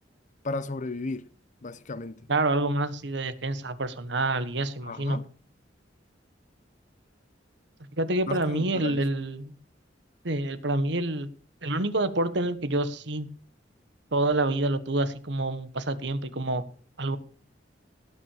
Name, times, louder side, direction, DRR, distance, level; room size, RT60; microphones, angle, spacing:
voice 1, 0.4-1.3 1.6-2.3 4.8-5.3 8.3-9.1, left 2 dB, 45° left, 0.8 m, -34 dB
voice 2, 2.3-5.2 7.9-9.6 10.2-11.3 11.6-13.3 14.1-16.6 17.0-17.2, right 2 dB, 70° right, 1.4 m, -27 dB
17.0 x 6.2 x 7.2 m
head